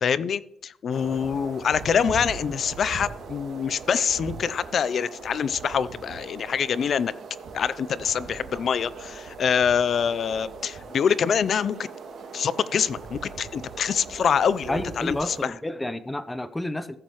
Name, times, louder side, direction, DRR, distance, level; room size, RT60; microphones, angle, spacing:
voice 1, 0.0-7.1 7.5-11.9 12.3-15.5, left 7 dB, 50° left, 0.5 m, -25 dB
sound 1, 0.9-15.5, right 5 dB, 60° right, 2.2 m, -40 dB
voice 2, 14.7-17.0, left 1 dB, 10° left, 0.7 m, -30 dB
14.5 x 7.5 x 3.1 m
cardioid pair, 110°, 0 cm